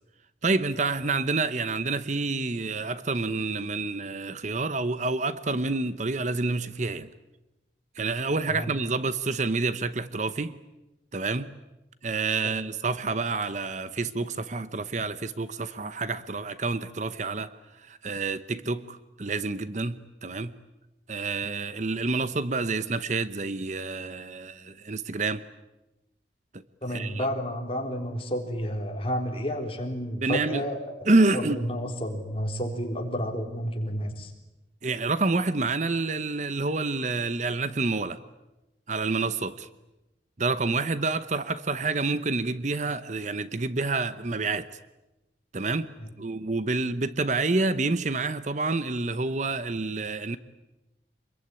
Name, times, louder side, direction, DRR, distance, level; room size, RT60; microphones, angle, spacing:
voice 1, 0.4-7.1 8.0-10.6 11.1-11.5 12.0-20.6 21.1-25.4 26.9-27.3 30.2-30.6 31.1-31.7 34.8-38.2 38.9-39.7 40.4-44.7 45.5-50.4, right 3 dB, 40° right, 0.9 m, -28 dB
voice 2, 26.8-30.8 31.3-34.3 46.0-46.1, equal, 30° left, 4.0 m, -31 dB
26.0 x 22.5 x 9.8 m
head